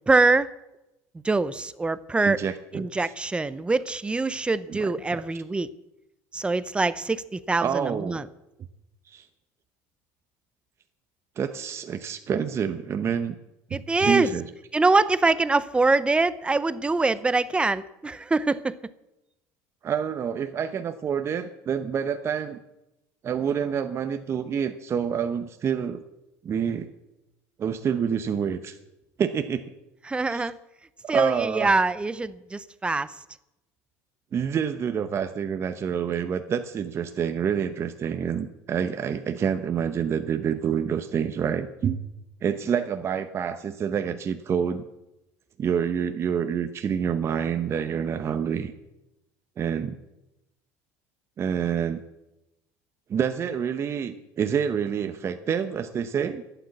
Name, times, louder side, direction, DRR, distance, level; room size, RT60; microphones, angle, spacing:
voice 1, 0.1-0.5 1.2-2.4 2.7-5.7 6.3-8.3 13.7-14.3 14.7-18.8 30.1-30.6 31.1-33.1, right 3 dB, 15° right, 17 dB, 0.6 m, -24 dB
voice 2, 2.2-2.9 4.7-5.2 7.6-8.2 9.1-9.3 11.4-13.3 13.7-14.4 19.8-22.6 23.2-26.0 26.4-26.9 27.6-28.8 29.2-29.6 30.3-30.4 31.1-31.7 34.3-42.0 42.4-44.9 45.6-48.7 49.6-50.0 51.4-52.0 53.1-56.4, right 7 dB, 35° right, 8 dB, 0.9 m, -27 dB
11.5 x 9.2 x 8.3 m, 0.93 s
supercardioid pair, 105°, 7 cm